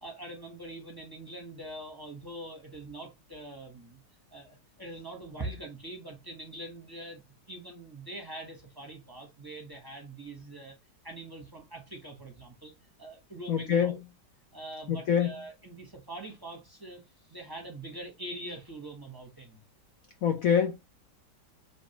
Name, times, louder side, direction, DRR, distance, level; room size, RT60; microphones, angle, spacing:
voice 1, 0.0-4.0 4.3-7.2 7.5-10.8 11.0-12.7 13.0-14.0 14.5-17.0 17.3-19.6 20.5-20.7, right 1 dB, 15° right, 1.0 m, -43 dB
voice 2, 13.5-14.0 14.9-15.3 20.2-20.8, left 8 dB, 65° left, 1.0 m, -25 dB
5.1 x 3.4 x 2.9 m
omnidirectional pair, 1.9 m